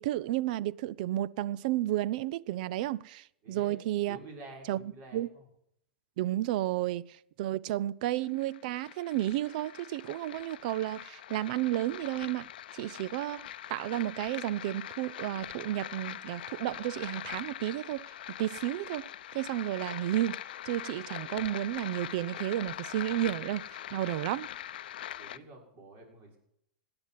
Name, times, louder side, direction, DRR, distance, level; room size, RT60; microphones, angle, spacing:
voice 1, 0.0-4.2 4.7-4.8 5.1-5.3 6.2-12.5 12.7-18.1 18.4-20.4 20.6-24.5, right 14 dB, 55° right, 0.5 m, -32 dB
voice 2, 3.4-3.8 4.1-5.5 25.2-26.4, right 2 dB, 40° right, 6.3 m, -49 dB
sound 1, 8.0-25.4, left 12 dB, 70° left, 0.6 m, -43 dB
17.0 x 9.8 x 7.4 m
hypercardioid pair, 110°, 5 cm